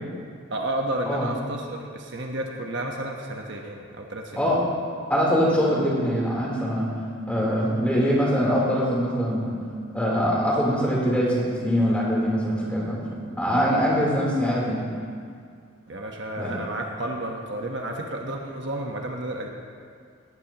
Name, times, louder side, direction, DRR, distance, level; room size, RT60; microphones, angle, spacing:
voice 1, 0.5-4.5 15.9-19.5, right 1 dB, 55° right, 0 dB, 1.3 m, -31 dB
voice 2, 5.1-6.9 7.3-9.5 9.9-14.9 16.3-16.5, equal, 5° left, -6 dB, 3.6 m, -23 dB
18.5 x 18.0 x 3.0 m, 2.2 s
head